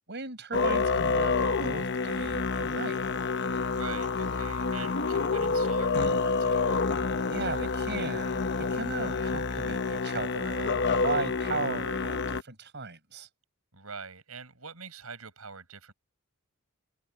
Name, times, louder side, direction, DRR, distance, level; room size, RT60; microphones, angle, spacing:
voice 1, 0.1-3.0 7.3-13.3, right 3 dB, 55° right, 6.1 m, -36 dB
Musical instrument, 0.5-12.4, left 4 dB, 55° left, 0.9 m, -28 dB
voice 2, 3.7-6.8 13.7-15.9, right 5 dB, 85° right, 6.3 m, -44 dB
head